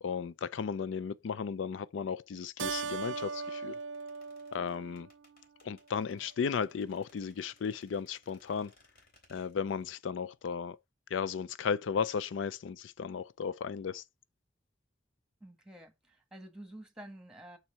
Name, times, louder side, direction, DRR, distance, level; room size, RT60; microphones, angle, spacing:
voice 1, 0.0-3.8 4.5-5.1 5.6-8.7 9.3-10.8 11.1-14.0, left 6 dB, 90° left, 0.4 m, -35 dB
Keyboard (musical), 2.6-5.5, right 5 dB, 85° right, 0.5 m, -39 dB
sound 1, 2.9-10.0 10.2-10.3, left 2 dB, 55° left, 3.6 m, -66 dB
voice 2, 15.4-17.6, right 1 dB, 5° right, 1.7 m, -49 dB
6.3 x 4.5 x 5.4 m
head